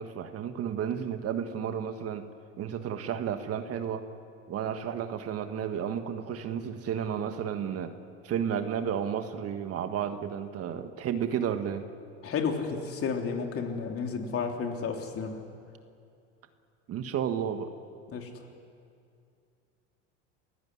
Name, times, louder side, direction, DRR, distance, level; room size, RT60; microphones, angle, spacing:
voice 1, 0.0-2.2 2.6-4.0 4.5-7.9 8.2-11.8 16.9-17.7, right 8 dB, 40° right, 8 dB, 1.6 m, -32 dB
voice 2, 12.2-15.4 18.1-18.3, left 5 dB, 40° left, 3 dB, 3.4 m, -32 dB
29.0 x 16.0 x 9.9 m, 2.4 s
supercardioid pair, 105°, 35 cm